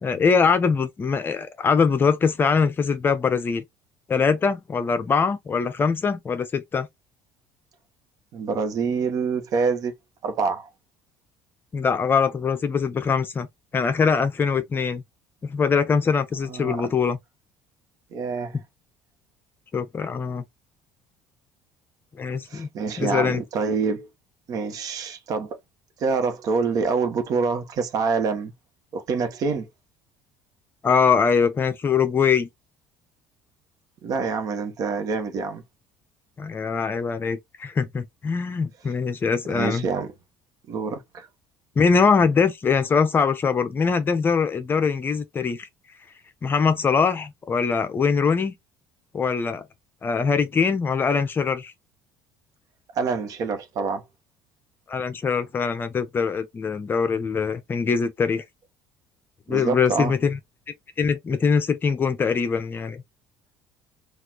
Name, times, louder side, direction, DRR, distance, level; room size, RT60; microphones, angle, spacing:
voice 1, 0.0-3.6 4.1-6.9 11.7-13.5 13.7-15.0 15.4-17.2 19.7-20.4 22.2-22.7 23.0-23.4 30.8-32.5 36.4-39.9 41.8-45.7 46.4-48.5 49.1-49.6 50.0-51.7 54.9-58.4 59.5-60.4 61.0-63.0, left 5 dB, 30° left, 0.6 m, -22 dB
voice 2, 8.3-9.9 10.2-10.7 16.5-16.9 18.1-18.6 22.5-24.1 24.5-25.6 26.0-28.5 28.9-29.7 34.0-35.6 39.5-40.1 40.7-41.3 52.9-54.0 59.5-60.1, right 5 dB, 55° right, 1.1 m, -26 dB
4.1 x 2.5 x 2.9 m
cardioid pair, 120°, 8 cm